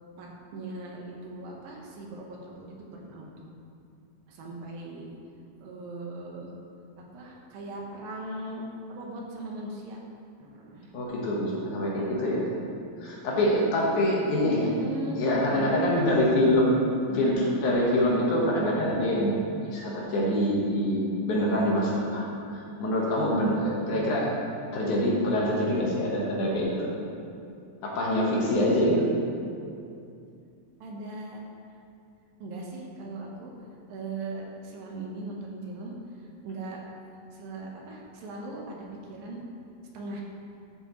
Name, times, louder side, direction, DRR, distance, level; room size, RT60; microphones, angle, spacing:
voice 1, 0.2-3.5 4.3-5.1 5.6-6.5 7.0-8.6 8.9-10.0 10.4-11.1 11.5-11.9 14.6-16.2 17.1-17.5 25.5-26.0 30.8-31.4 32.4-33.5 33.9-36.8 37.3-39.4 39.9-40.2, right 2 dB, 85° right, -1 dB, 3.0 m, -39 dB
voice 2, 10.9-12.5 13.0-14.7 15.2-16.8 17.1-19.4 19.7-22.2 22.5-24.3 24.7-26.9 27.8-29.1, left 1 dB, 65° left, -4 dB, 2.7 m, -25 dB
12.5 x 7.9 x 3.1 m, 2.5 s
omnidirectional pair, 4.0 m